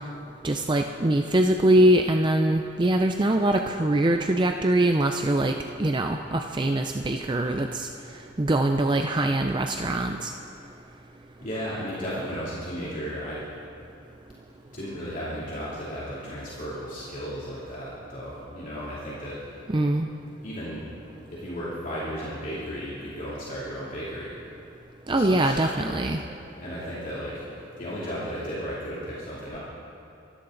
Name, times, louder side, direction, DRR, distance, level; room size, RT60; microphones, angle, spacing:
voice 1, 0.4-5.5 5.8-7.9 8.4-10.3 19.7-20.1 25.1-26.2, right 1 dB, 25° right, 4 dB, 0.5 m, -23 dB
voice 2, 11.4-13.4 14.7-19.6 20.4-20.8 21.3-24.4 25.1-26.0 26.6-27.4 27.8-29.6, equal, 40° left, -8 dB, 2.9 m, -34 dB
25.5 x 13.5 x 4.0 m, 2.6 s
head